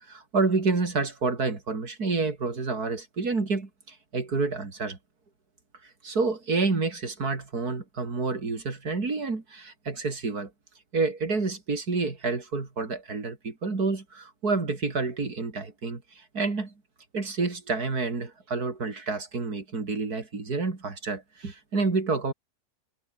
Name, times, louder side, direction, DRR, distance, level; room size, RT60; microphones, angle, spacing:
voice 1, 0.0-5.0 6.0-10.5 10.9-16.7 17.1-22.3, right 3 dB, 85° right, 4.0 m, -29 dB
omnidirectional pair, 1.6 m